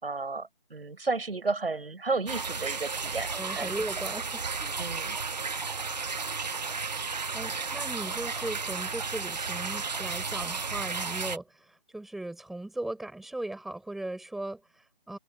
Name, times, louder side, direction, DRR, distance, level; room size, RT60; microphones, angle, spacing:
voice 1, 0.0-3.7 4.8-5.2, right 3 dB, 90° right, 6.3 m, -32 dB
sound 1, 2.3-11.4, right 4 dB, 45° right, 1.4 m, -33 dB
voice 2, 3.3-4.8 6.8-15.2, right 2 dB, ahead, 5.2 m, -38 dB
open air
hypercardioid pair, 180°, 29 cm